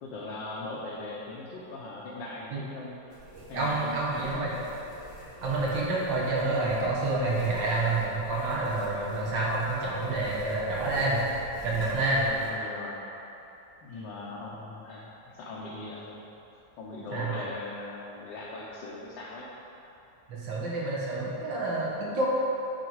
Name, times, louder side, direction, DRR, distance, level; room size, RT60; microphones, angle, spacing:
voice 1, 0.0-3.2 3.5-4.7 12.2-13.0 13.8-15.1 15.4-16.2 16.8-19.5, left 2 dB, 75° left, -5 dB, 1.5 m, -40 dB
sound 1, 3.1-12.5, right 1 dB, 45° right, 1.2 m, -46 dB
voice 2, 3.5-4.5 5.4-11.2 11.6-12.2 17.1-17.4 20.3-22.3, right 2 dB, 80° right, -6 dB, 2.2 m, -28 dB
9.7 x 4.1 x 4.7 m, 3.0 s
omnidirectional pair, 2.0 m